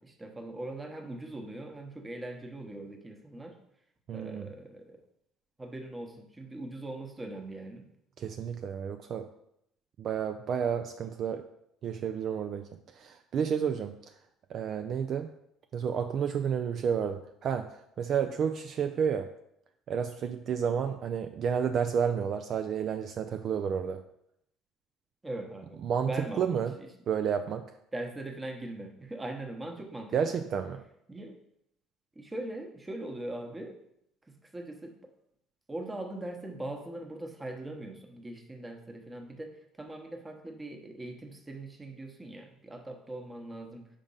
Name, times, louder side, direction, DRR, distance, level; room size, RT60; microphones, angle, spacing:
voice 1, 0.0-3.6 4.1-5.0 5.6-7.9 25.2-25.8 26.1-26.9 27.9-30.5 31.1-31.4 32.1-33.8 34.3-34.9 35.7-43.9, right 1 dB, 15° right, 3 dB, 1.0 m, -41 dB
voice 2, 4.1-4.5 8.2-9.3 10.0-11.5 11.8-12.6 12.9-13.9 14.5-15.3 15.7-19.3 19.9-24.0 25.8-26.1 26.4-26.7 27.1-27.7 30.1-30.8, right 7 dB, 50° right, 7 dB, 0.4 m, -31 dB
5.2 x 3.6 x 5.4 m, 0.77 s
cardioid pair, 110°, 0 cm